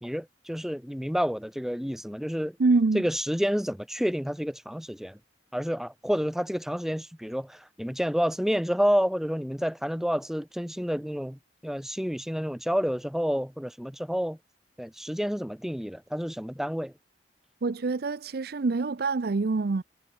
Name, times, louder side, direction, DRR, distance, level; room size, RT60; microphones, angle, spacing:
voice 1, 0.0-2.6 2.9-5.2 5.5-14.4 14.8-16.9, equal, ahead, 1.2 m, -29 dB
voice 2, 2.6-3.0 17.6-19.8, right 3 dB, 55° right, 0.5 m, -25 dB
head